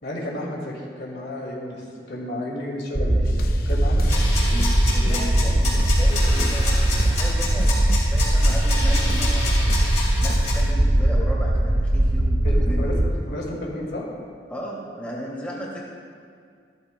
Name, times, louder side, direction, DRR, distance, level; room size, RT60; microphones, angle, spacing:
voice 1, 0.0-3.3 3.6-5.3 12.4-13.0 13.3-14.0, left 1 dB, 70° left, -2 dB, 2.1 m, -32 dB
sound 1, 2.9-13.1, right 1 dB, 25° right, 0.5 m, -20 dB
sound 2, 3.3-10.6, left 2 dB, 55° left, 0.6 m, -39 dB
sound 3, 4.0-10.7, left 2 dB, 40° left, 3.1 m, -29 dB
voice 2, 4.9-9.6 10.2-12.9 14.5-15.8, equal, 10° left, -5 dB, 2.2 m, -35 dB
15.0 x 13.0 x 2.2 m, 2.2 s
head